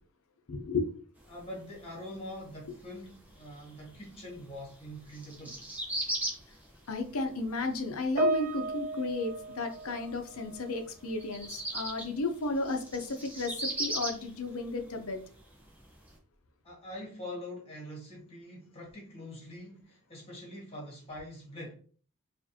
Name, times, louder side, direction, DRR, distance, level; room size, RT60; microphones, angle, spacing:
voice 1, 0.5-0.9 6.9-15.2, left 3 dB, 70° left, 0.7 m, -33 dB
sound 1, 1.2-16.2, right 1 dB, 5° right, 0.9 m, -40 dB
voice 2, 1.3-5.6 16.6-21.7, left 1 dB, 25° left, 1.7 m, -44 dB
Piano, 8.2-10.8 11.1-11.4 12.2-12.3, right 2 dB, 40° right, 0.4 m, -34 dB
4.8 x 2.6 x 2.7 m
head